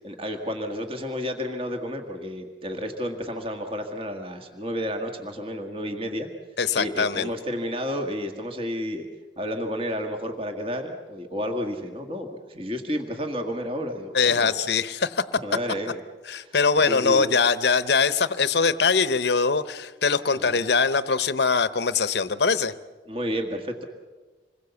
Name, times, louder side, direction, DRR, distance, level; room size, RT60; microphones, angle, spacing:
voice 1, 0.0-6.3 6.7-9.0 9.4-14.5 15.4-16.0 16.3-16.5 16.9-17.3 20.3-20.6 23.1-23.8, equal, 30° right, 4 dB, 1.7 m, -31 dB
voice 2, 6.6-7.3 14.1-15.2 16.3-22.7, left 5 dB, 65° left, 14 dB, 0.8 m, -22 dB
27.0 x 21.0 x 7.0 m, 1.3 s
head